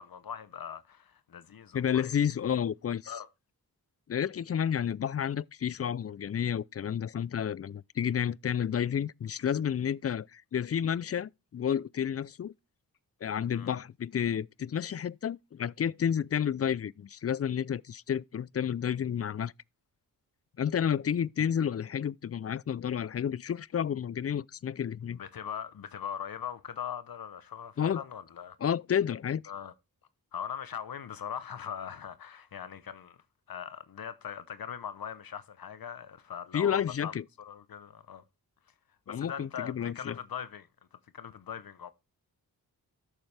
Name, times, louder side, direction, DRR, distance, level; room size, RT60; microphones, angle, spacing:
voice 1, 0.0-2.1 3.1-3.3 13.5-13.7 25.1-28.6 29.5-29.7 30.3-33.2 33.5-37.1 37.4-38.2 39.1-40.7 41.1-41.9, left 8 dB, 60° left, 0.9 m, -40 dB
voice 2, 1.7-3.1 4.1-12.5 13.2-19.5 20.6-25.2 27.8-28.0 28.6-29.4 36.5-37.2 39.1-40.2, left 8 dB, 40° left, 0.4 m, -31 dB
13.0 x 7.2 x 3.3 m
cardioid pair, 50°, 39 cm